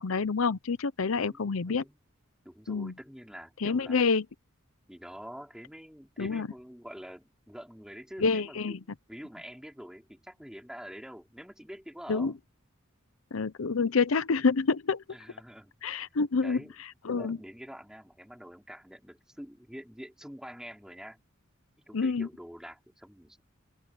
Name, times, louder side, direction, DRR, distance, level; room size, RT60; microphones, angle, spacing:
voice 1, 0.0-1.8 2.7-2.9 3.6-4.2 6.2-6.5 8.2-8.8 12.1-12.3 13.3-15.0 15.8-16.6 17.0-17.4 21.9-22.3, left 4 dB, 80° left, 0.7 m, -27 dB
voice 2, 1.1-2.0 2.4-4.0 4.9-8.8 9.1-12.4 15.1-15.7 16.4-16.7 17.1-21.2 21.8-23.4, equal, 5° right, 5.1 m, -46 dB
open air
head